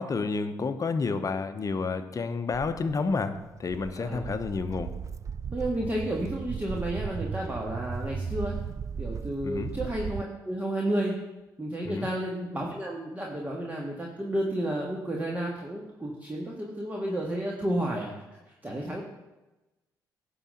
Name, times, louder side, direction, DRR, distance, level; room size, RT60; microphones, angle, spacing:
voice 1, 0.0-4.9 9.4-9.7 11.8-12.1, left 4 dB, 40° left, 9 dB, 0.9 m, -30 dB
Walk footsteps, 2.5-10.2, right 6 dB, 35° right, 0.4 m, -36 dB
voice 2, 4.0-4.3 5.5-8.6 9.0-11.1 11.6-18.1 18.5-19.0, right 1 dB, 20° right, -2 dB, 1.7 m, -31 dB
11.0 x 4.0 x 7.6 m, 1.1 s
supercardioid pair, 60°, 8 cm